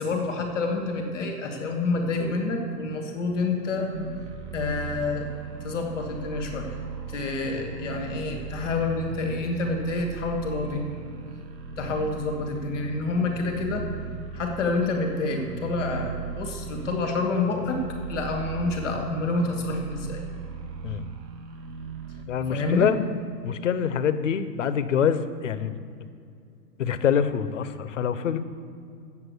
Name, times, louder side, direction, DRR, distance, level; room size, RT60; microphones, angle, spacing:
voice 1, 0.0-3.9 4.5-5.3 5.6-6.8 7.1-10.8 11.8-13.9 14.3-17.8 18.1-20.2 22.5-22.9, left 3 dB, ahead, -12 dB, 0.4 m, -28 dB
sound 1, 3.9-22.3, right 5 dB, 80° right, 1.3 m, -38 dB
voice 2, 22.3-23.0 23.4-25.8 26.8-28.4, left 8 dB, 50° left, 12 dB, 0.5 m, -25 dB
7.9 x 7.3 x 8.0 m, 2.4 s
hypercardioid pair, 175°, 50 cm